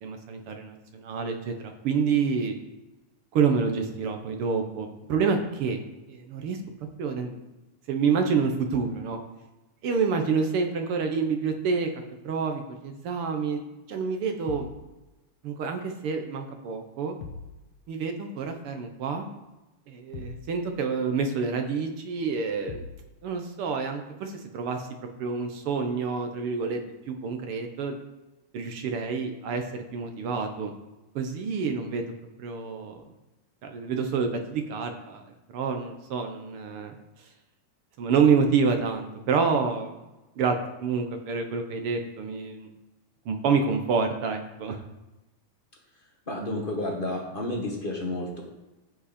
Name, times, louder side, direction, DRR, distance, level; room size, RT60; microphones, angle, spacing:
voice 1, 0.0-2.5 3.3-5.8 6.1-6.6 7.0-7.4 7.9-9.2 9.8-11.9 12.2-13.6 13.9-14.7 15.4-17.2 17.9-19.3 19.9-22.8 23.2-24.9 25.2-26.8 27.1-28.0 28.5-30.7 31.1-32.1 32.4-33.0 33.6-35.2 35.5-36.9 38.0-39.9 40.4-42.7 43.2-44.8, right 5 dB, 65° right, 5 dB, 1.5 m, -28 dB
sound 1, 14.5-14.8 17.2-17.6 20.1-20.5 22.7-23.0, left 5 dB, 85° left, 2.4 m, -40 dB
voice 2, 46.3-48.4, left 1 dB, 35° left, 0 dB, 0.8 m, -31 dB
15.0 x 5.3 x 4.3 m, 1.0 s
omnidirectional pair, 3.3 m